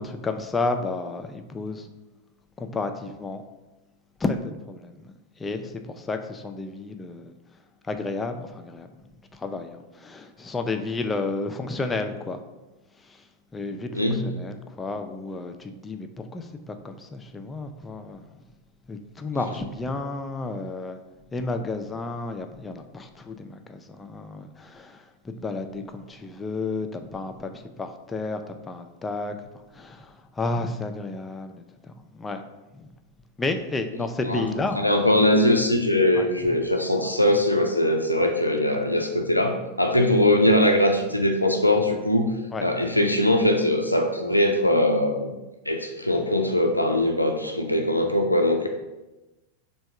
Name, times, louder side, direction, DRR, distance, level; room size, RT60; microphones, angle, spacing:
voice 1, 0.0-1.9 2.6-3.4 4.2-5.1 5.4-7.3 7.9-8.9 9.3-12.4 13.1-13.2 13.5-18.2 18.9-21.0 21.3-29.4 29.7-32.4 32.7-32.9 33.4-34.8 36.1-36.3 38.2-38.3 42.5-42.7, left 3 dB, 15° left, 6 dB, 0.3 m, -32 dB
voice 2, 13.9-14.5 34.2-34.4 34.8-42.3 42.6-45.3 45.7-48.7, left 1 dB, 85° left, 3 dB, 0.4 m, -21 dB
3.5 x 2.3 x 4.3 m, 1.1 s
figure-of-eight pair, 90°, 0 cm